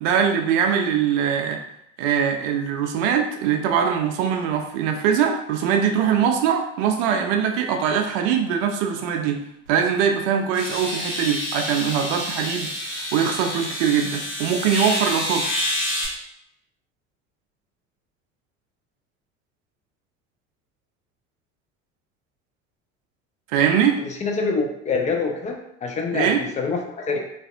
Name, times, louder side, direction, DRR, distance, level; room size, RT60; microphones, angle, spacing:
voice 1, 0.0-1.6 2.0-9.4 9.7-15.6 23.5-24.0 26.1-26.4, right 7 dB, 60° right, 4 dB, 0.5 m, -22 dB
sound 1, 9.7-9.8 10.5-16.1, left 1 dB, 75° left, 1.2 m, -28 dB
voice 2, 24.2-27.2, left 4 dB, 20° left, 2 dB, 0.4 m, -25 dB
2.5 x 2.3 x 2.4 m, 0.77 s
hypercardioid pair, 65°, 39 cm